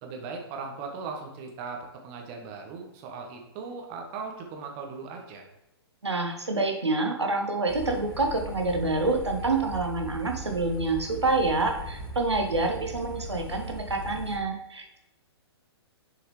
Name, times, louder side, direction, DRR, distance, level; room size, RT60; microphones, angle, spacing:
voice 1, 0.0-5.5, right 4 dB, 35° right, 2 dB, 1.2 m, -38 dB
voice 2, 6.0-15.0, right 3 dB, 85° right, 3 dB, 0.8 m, -27 dB
sound 1, 7.7-14.4, left 1 dB, 60° left, 1.7 m, -39 dB
6.5 x 4.7 x 3.1 m, 0.92 s
figure-of-eight pair, 115°, 14 cm